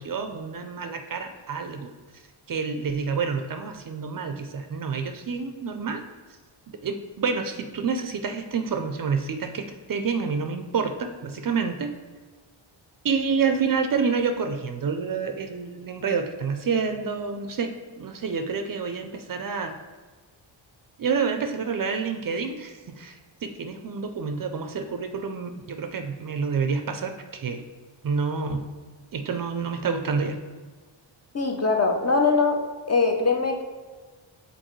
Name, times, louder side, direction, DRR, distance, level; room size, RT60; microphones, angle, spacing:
voice 1, 0.0-1.9 2.5-6.0 6.8-11.9 13.0-19.7 21.0-27.7 28.0-28.7 29.1-30.4, right 5 dB, 45° right, 6 dB, 0.5 m, -28 dB
voice 2, 31.3-32.6 32.9-33.6, left 4 dB, 35° left, 2 dB, 0.6 m, -22 dB
7.8 x 4.1 x 3.1 m, 1.4 s
wide cardioid pair, 165°, 47 cm